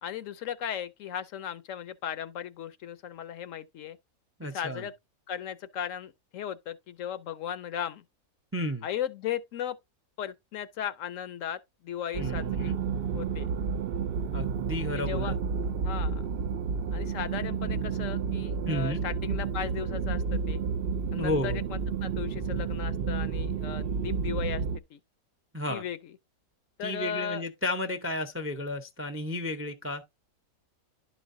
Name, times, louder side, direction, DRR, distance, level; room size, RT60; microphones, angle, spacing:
voice 1, 0.0-4.0 4.5-4.9 5.3-8.0 8.8-9.8 10.2-12.7 13.1-13.5 14.9-15.3 15.8-16.2 16.9-20.6 21.1-24.6 24.9-25.0 25.7-26.0 26.8-27.4, left 9 dB, 70° left, 0.9 m, -36 dB
voice 2, 4.4-4.9 8.5-8.9 12.2-12.8 14.3-15.3 18.7-19.0 21.2-21.6 25.5-25.8 26.8-30.0, left 1 dB, 20° right, 0.3 m, -32 dB
sound 1, 12.1-24.8, right 6 dB, 80° right, 0.5 m, -31 dB
11.0 x 5.1 x 2.6 m
omnidirectional pair, 1.6 m